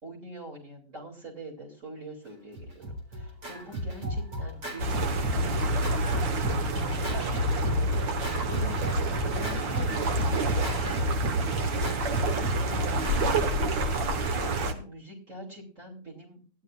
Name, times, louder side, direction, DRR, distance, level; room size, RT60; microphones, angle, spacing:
voice 1, 0.0-8.8 9.2-13.4 14.4-16.6, right 1 dB, 40° right, -2 dB, 3.4 m, -44 dB
Scratching (performance technique), 2.5-14.6, equal, 65° right, 4.6 m, -34 dB
sound 1, 4.8-14.7, right 2 dB, 85° right, 2.1 m, -28 dB
17.0 x 12.0 x 2.5 m, 0.38 s
omnidirectional pair, 2.0 m